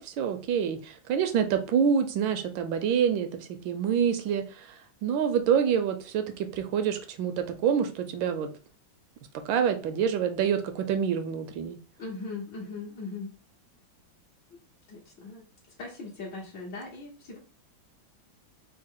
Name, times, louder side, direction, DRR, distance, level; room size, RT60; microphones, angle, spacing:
voice 1, 0.0-4.7 5.0-8.5 9.5-11.8, right 7 dB, 75° right, 7 dB, 1.3 m, -27 dB
voice 2, 12.0-13.3 14.9-15.5 15.8-17.4, left 3 dB, 70° left, -5 dB, 1.7 m, -39 dB
4.2 x 2.1 x 3.6 m, 0.36 s
omnidirectional pair, 2.2 m